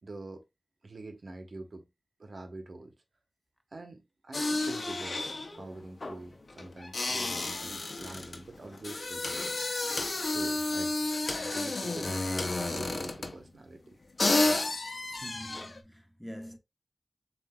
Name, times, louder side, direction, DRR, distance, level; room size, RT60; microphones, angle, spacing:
voice 1, 0.0-0.4 0.8-1.9 2.2-2.9 3.7-5.3 5.6-9.4 10.3-11.0 11.4-14.0, right 2 dB, 85° right, 0.9 m, -45 dB
sound 1, 4.3-13.5 13.9-14.0 14.2-15.8, left 2 dB, 75° left, 0.6 m, -31 dB
voice 2, 15.2-16.6, equal, ahead, 0.9 m, -45 dB
7.4 x 2.6 x 2.2 m
wide cardioid pair, 55°, 0 cm